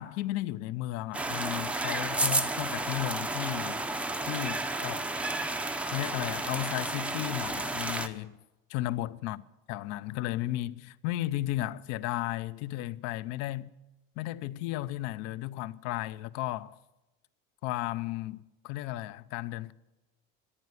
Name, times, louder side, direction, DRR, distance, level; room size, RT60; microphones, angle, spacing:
voice 1, 0.0-3.8 4.2-5.1 5.9-8.4 8.7-9.4 9.7-13.7 14.2-16.8 17.6-19.7, left 15 dB, 50° left, 0.6 m, -34 dB
sound 1, 1.1-8.1, right 2 dB, 5° right, 0.6 m, -32 dB
14.5 x 11.0 x 9.4 m
cardioid pair, 160°, 33 cm